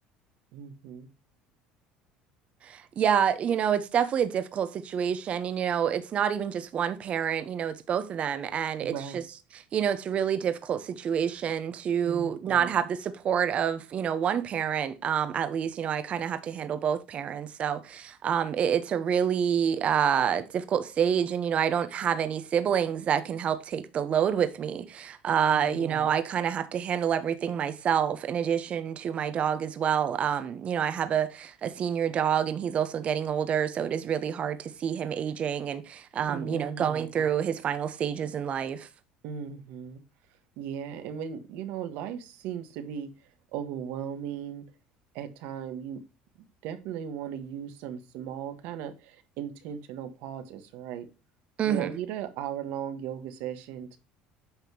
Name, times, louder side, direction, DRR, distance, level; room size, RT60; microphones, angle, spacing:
voice 1, 0.5-1.1 8.8-9.2 12.0-12.7 25.5-26.1 36.3-37.1 39.2-40.0 40.6-43.1 43.5-44.6 45.1-46.0 46.6-51.1 51.6-54.0, right 8 dB, 75° right, 1.5 m, -37 dB
voice 2, 2.6-9.2 9.5-38.9 51.6-51.9, right 8 dB, 40° right, 1.0 m, -28 dB
8.9 x 5.8 x 2.9 m
supercardioid pair, 110°, 3 cm